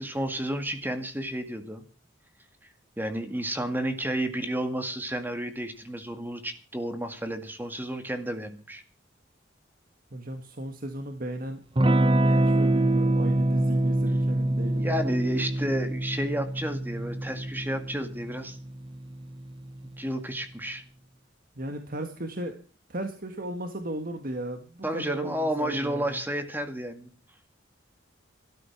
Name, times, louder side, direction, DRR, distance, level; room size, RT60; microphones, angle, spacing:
voice 1, 0.0-1.8 3.0-8.8 14.8-18.6 20.0-20.8 24.8-27.1, right 1 dB, 10° right, 7 dB, 2.0 m, -31 dB
voice 2, 10.1-15.1 21.6-22.6 22.9-26.2, right 1 dB, 50° right, 6 dB, 1.7 m, -36 dB
Electric guitar / Strum, 11.8-20.1, right 1 dB, 25° right, 0.9 m, -26 dB
14.5 x 13.5 x 6.0 m, 0.37 s
head